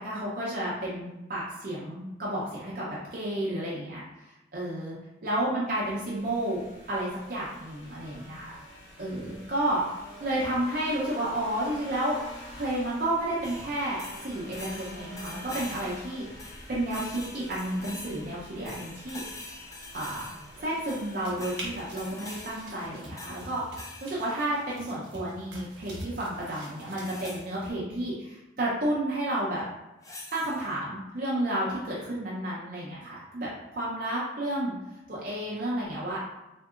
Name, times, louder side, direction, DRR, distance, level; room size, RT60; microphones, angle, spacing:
voice 1, 0.0-5.0 5.2-6.6 6.9-8.6 9.0-9.8 10.2-12.2 12.5-16.4 16.7-19.4 19.9-23.6 24.0-29.6 30.3-34.8 35.1-36.2, right 1 dB, 50° right, -7 dB, 0.6 m, -31 dB
sound 1, 5.7-23.6, equal, 75° left, 1.0 m, -48 dB
sound 2, 13.4-24.9 27.0-27.5 30.0-30.7, left 2 dB, 15° left, 0.3 m, -45 dB
sound 3, 21.1-27.7, right 1 dB, 70° right, 0.9 m, -45 dB
3.6 x 2.6 x 2.4 m, 0.99 s
head